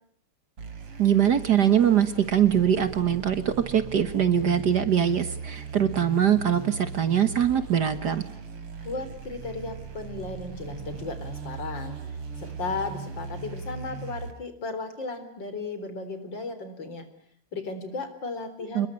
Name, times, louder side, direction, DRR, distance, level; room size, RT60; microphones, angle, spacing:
sound 1, 0.6-14.3, right 5 dB, 85° right, 3.8 m, -39 dB
voice 1, 1.0-8.3 18.8-18.9, right 9 dB, 55° right, 11 dB, 1.8 m, -22 dB
voice 2, 8.8-17.1 17.5-18.9, left 3 dB, 55° left, 10 dB, 4.4 m, -35 dB
28.5 x 21.5 x 9.7 m, 0.68 s
omnidirectional pair, 2.4 m